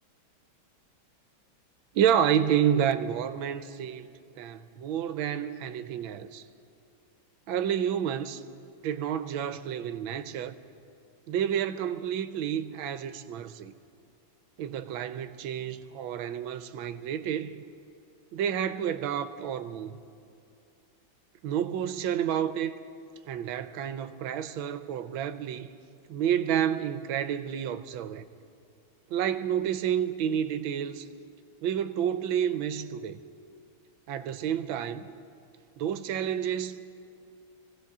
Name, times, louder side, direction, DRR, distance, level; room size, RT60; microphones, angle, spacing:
voice 1, 1.9-6.4 7.5-8.4 8.8-10.6 11.3-13.7 14.6-17.6 18.3-20.0 21.4-22.7 23.3-25.7 26.1-28.2 29.1-31.1 31.6-33.2 34.1-35.0 35.8-36.8, right 9 dB, 75° right, 1.4 m, -29 dB
24.5 x 16.5 x 3.6 m
omnidirectional pair, 2.3 m